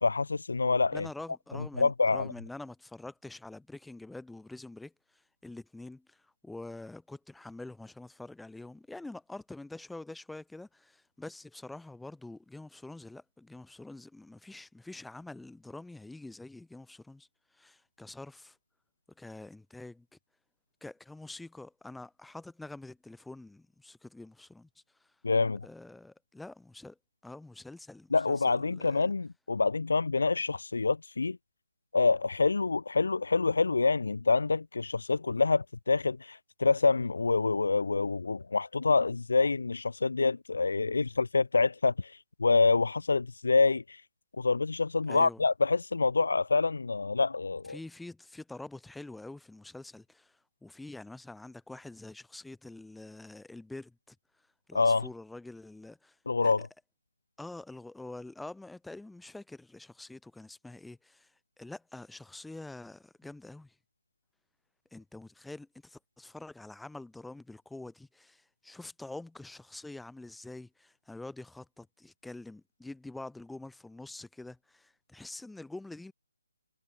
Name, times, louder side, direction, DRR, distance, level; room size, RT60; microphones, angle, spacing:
voice 1, 0.0-1.1 1.8-2.3 25.2-25.7 28.1-31.4 31.9-44.0 44.4-47.8 54.7-55.1 56.3-56.7, left 4 dB, 80° left, 0.9 m, -27 dB
voice 2, 0.9-17.3 17.5-18.6 19.2-20.1 20.8-24.7 25.0-25.1 25.6-27.0 27.2-29.1 45.1-45.4 47.7-54.2 54.7-56.2 56.4-56.7 57.4-61.3 61.6-63.7 64.9-76.1, left 2 dB, ahead, 4.4 m, -46 dB
hypercardioid pair, 165°, 0 cm